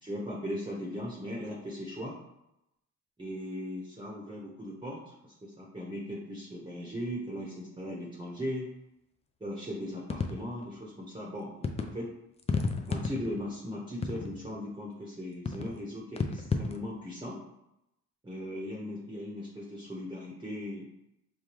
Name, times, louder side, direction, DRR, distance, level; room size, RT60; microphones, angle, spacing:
voice 1, 0.0-2.2 3.2-8.7 9.4-12.1 12.9-17.4 18.2-20.9, equal, 15° right, -4 dB, 0.9 m, -38 dB
sound 1, 10.1-10.7 11.6-11.9 12.4-13.5 14.0-14.5 15.5-15.8 16.2-16.8, left 4 dB, 20° left, 0.4 m, -32 dB
5.2 x 2.3 x 3.0 m, 0.84 s
cardioid pair, 90°, 30 cm